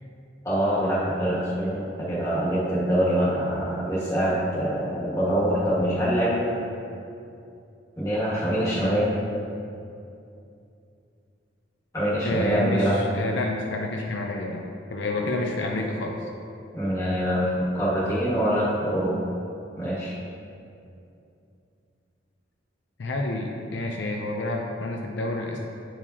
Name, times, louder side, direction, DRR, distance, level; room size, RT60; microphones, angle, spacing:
voice 1, 0.4-6.5 8.0-9.1 11.9-13.0 16.7-19.2 19.8-20.2, equal, 15° left, -8 dB, 1.5 m, -24 dB
voice 2, 12.2-16.2 23.0-25.6, left 2 dB, 70° left, 0 dB, 0.5 m, -29 dB
8.8 x 4.7 x 2.8 m, 2.6 s
head